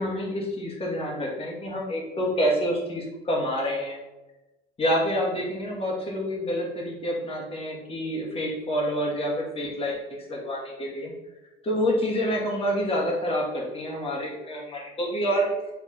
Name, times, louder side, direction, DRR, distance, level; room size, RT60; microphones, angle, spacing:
voice 1, 0.0-4.0 4.8-10.0 10.3-11.1 11.6-15.5, equal, 30° left, -3 dB, 1.5 m, -27 dB
4.6 x 3.5 x 2.8 m, 1.0 s
cardioid pair, 100°, 21 cm